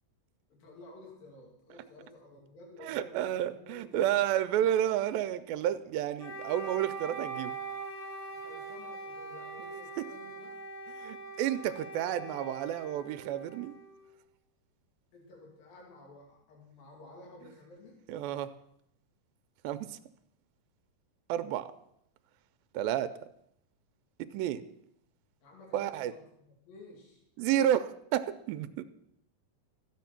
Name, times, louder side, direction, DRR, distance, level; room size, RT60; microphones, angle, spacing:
voice 1, 0.5-4.2 8.4-10.6 15.1-18.0 25.4-27.2, left 2 dB, 75° left, -2 dB, 4.3 m, -53 dB
voice 2, 2.8-7.6 11.0-13.8 18.1-18.5 19.6-20.0 21.3-21.7 22.7-23.1 24.2-24.6 25.7-26.1 27.4-28.8, right 11 dB, 85° right, 11 dB, 2.4 m, -31 dB
Wind instrument woodwind instrument, 6.2-14.2, right 3 dB, 45° left, 2.5 m, -42 dB
14.0 x 9.2 x 5.9 m, 0.74 s
omnidirectional pair, 4.1 m